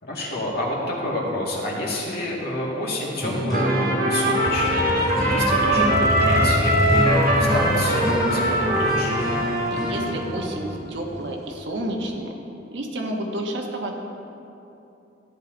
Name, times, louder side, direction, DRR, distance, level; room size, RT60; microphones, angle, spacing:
voice 1, 0.0-9.2, left 1 dB, 55° left, -4 dB, 2.3 m, -28 dB
sound 1, 3.2-12.2, equal, ahead, 2.1 m, -29 dB
Trumpet, 3.5-10.2, right 1 dB, 55° right, 1.8 m, -22 dB
Motorcycle, 4.5-12.1, left 1 dB, 15° left, 0.4 m, -29 dB
voice 2, 9.7-12.3 12.7-14.0, right 1 dB, 70° right, 0 dB, 1.4 m, -30 dB
14.0 x 9.6 x 4.0 m, 2.8 s
head